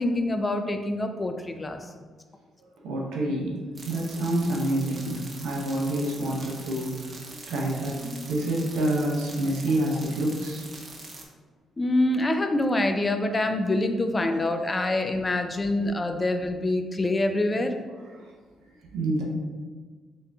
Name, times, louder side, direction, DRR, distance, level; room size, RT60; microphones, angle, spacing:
voice 1, 0.0-1.9 11.8-17.7, left 2 dB, 25° left, 6 dB, 0.3 m, -25 dB
voice 2, 2.8-10.7 18.2-18.3 18.9-19.2, right 1 dB, 85° right, -2 dB, 0.6 m, -28 dB
sound 1, 3.7-11.2, right 2 dB, 35° right, 0.6 m, -43 dB
4.1 x 2.5 x 2.3 m, 1.5 s
cardioid pair, 90°, 0 cm